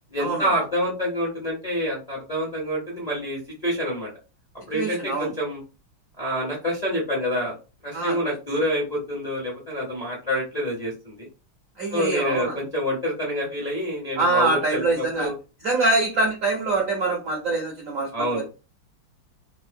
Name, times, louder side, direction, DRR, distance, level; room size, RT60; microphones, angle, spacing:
voice 1, 0.1-4.1 4.7-5.6 6.2-7.5 7.8-11.3 11.9-15.3 18.1-18.5, equal, 55° left, -3 dB, 0.4 m, -27 dB
voice 2, 4.7-5.3 7.9-8.1 11.8-12.6 14.1-15.3 15.6-18.5, right 2 dB, 70° right, 0 dB, 0.8 m, -24 dB
3.5 x 2.8 x 2.5 m, 0.32 s
omnidirectional pair, 2.4 m